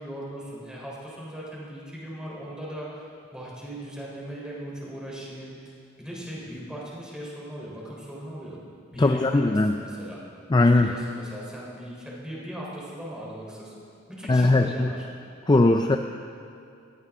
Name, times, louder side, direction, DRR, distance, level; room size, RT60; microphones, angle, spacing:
voice 1, 0.0-8.6 8.9-10.2 10.7-13.8 14.1-15.1, right 1 dB, 5° right, -5 dB, 3.8 m, -38 dB
voice 2, 9.0-9.7 10.5-10.9 14.3-14.9 15.5-16.0, left 2 dB, 20° left, 5 dB, 0.4 m, -19 dB
20.0 x 14.5 x 3.7 m, 2.4 s
head